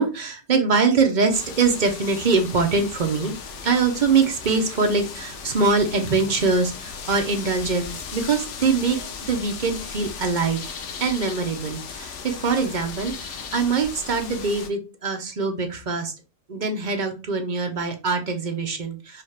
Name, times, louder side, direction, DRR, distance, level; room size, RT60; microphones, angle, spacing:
voice 1, 0.0-3.4 3.6-9.0 9.3-10.6 11.0-16.1 16.5-19.2, right 4 dB, 45° right, 4 dB, 0.7 m, -23 dB
sound 1, 1.3-14.7, left 6 dB, 70° left, 1.0 m, -37 dB
4.8 x 2.4 x 3.2 m, 0.29 s
omnidirectional pair, 1.3 m